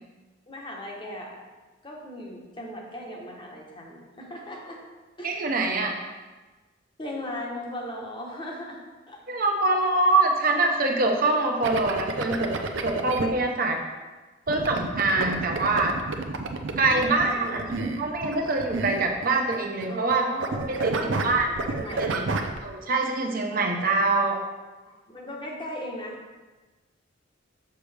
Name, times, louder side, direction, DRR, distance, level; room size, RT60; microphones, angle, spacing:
voice 1, 0.5-1.4 1.8-4.9 5.2-5.4 7.0-9.2 16.8-17.8 19.9-22.1 24.8-26.2, equal, 25° left, -1 dB, 1.1 m, -37 dB
voice 2, 5.2-5.9 9.3-12.5 12.8-13.8 14.5-15.9 16.8-20.3 20.7-20.9 21.2-21.5 22.1-22.2 22.6-24.4, right 3 dB, 50° right, 2 dB, 0.9 m, -24 dB
sound 1, 11.6-13.3 14.5-20.2 20.4-22.6, right 3 dB, 80° right, 0.6 m, -30 dB
6.8 x 6.0 x 3.4 m, 1.2 s
head